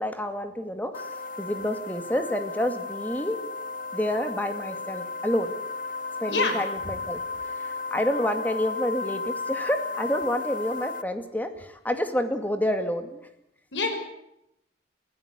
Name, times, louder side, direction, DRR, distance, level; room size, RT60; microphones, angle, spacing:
voice 1, 0.0-3.4 3.9-5.5 6.2-7.2 7.6-13.2, equal, 10° left, 7 dB, 2.2 m, -28 dB
sound 1, 0.9-11.0, left 4 dB, 50° left, 1.2 m, -34 dB
voice 2, 6.3-7.0 13.7-14.0, left 3 dB, 85° left, 6 dB, 5.7 m, -28 dB
24.0 x 16.0 x 8.2 m, 0.81 s
head